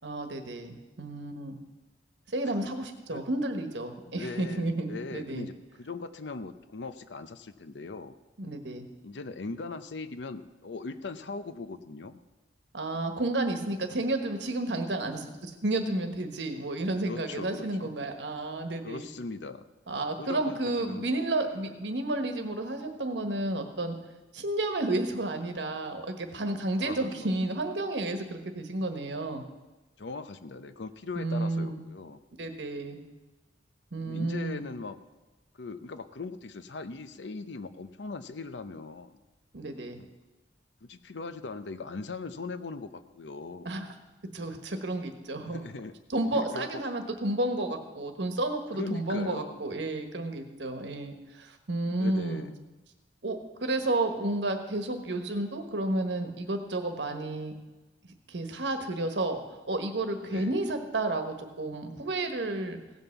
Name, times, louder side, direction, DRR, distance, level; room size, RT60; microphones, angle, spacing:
voice 1, 0.0-1.6 2.3-5.5 8.4-8.9 12.7-19.1 19.9-24.0 24.3-29.4 31.2-31.8 32.4-33.0 33.9-34.6 39.5-40.0 43.6-43.9 44.3-45.6 46.1-52.5 53.2-57.6 58.0-59.4 59.7-62.8, right 2 dB, 90° right, 6 dB, 1.3 m, -31 dB
voice 2, 4.2-8.2 9.0-12.2 17.0-17.9 18.8-19.7 20.2-21.1 26.8-27.3 30.0-32.2 34.0-35.0 35.6-39.2 40.0-40.1 40.8-43.7 45.4-45.9 46.3-46.7 48.7-49.6 52.0-52.6 60.2-60.5, left 3 dB, 85° left, 11 dB, 0.7 m, -40 dB
16.5 x 5.5 x 7.0 m, 1.1 s
head